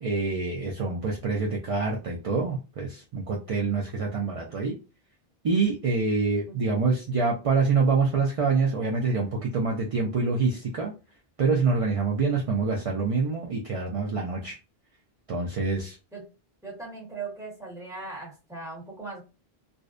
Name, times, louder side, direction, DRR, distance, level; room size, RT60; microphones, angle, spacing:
voice 1, 0.0-4.7 5.4-10.9 11.4-14.6 15.3-16.0, right 4 dB, 55° right, -1 dB, 0.4 m, -26 dB
voice 2, 6.5-6.9 12.5-12.9 16.1-16.3 16.6-19.2, right 3 dB, 5° right, -6 dB, 1.0 m, -39 dB
2.6 x 2.0 x 2.4 m, 0.31 s
omnidirectional pair, 1.0 m